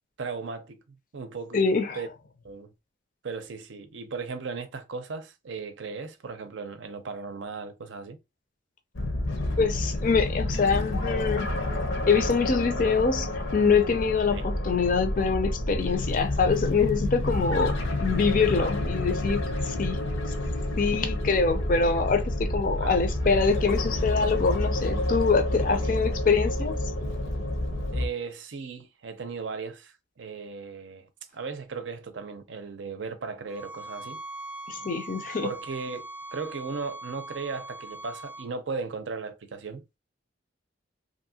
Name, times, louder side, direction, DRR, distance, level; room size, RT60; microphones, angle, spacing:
voice 1, 0.2-0.8 1.1-1.7 1.9-2.1 2.4-2.7 3.2-8.2 14.3-14.4 18.5-18.7 22.8-23.0 25.7-26.1 27.9-34.2 35.4-39.8, right 4 dB, 75° right, 0.6 m, -36 dB
voice 2, 1.5-2.0 9.6-11.5 12.1-20.3 20.8-26.8 34.7-35.5, left 5 dB, 45° left, 0.4 m, -25 dB
sound 1, 8.9-28.1, left 1 dB, 90° left, 0.8 m, -29 dB
sound 2, 33.5-38.5, right 2 dB, 5° right, 0.5 m, -41 dB
2.7 x 2.7 x 2.7 m
head